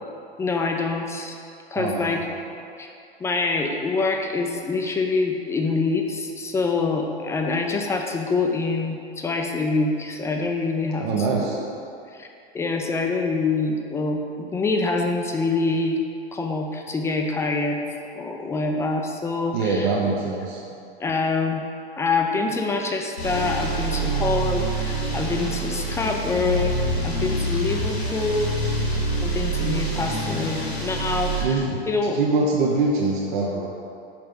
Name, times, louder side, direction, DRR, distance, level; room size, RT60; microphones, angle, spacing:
voice 1, 0.4-1.4 1.7-2.2 2.8-2.9 3.2-11.7 12.1-12.3 12.5-16.0 16.3-17.8 18.1-19.9 21.0-21.6 22.0-26.8 27.0-28.5 29.2-32.2, left 3 dB, 10° left, 2 dB, 0.4 m, -25 dB
voice 2, 1.8-2.2 11.0-11.6 19.5-20.6 31.4-31.8 32.1-33.7, right 3 dB, 50° right, -2 dB, 0.9 m, -23 dB
sound 1, 23.2-31.4, right 2 dB, 90° left, 1.4 m, -26 dB
5.9 x 5.5 x 5.2 m, 2.5 s
figure-of-eight pair, 100°, 31 cm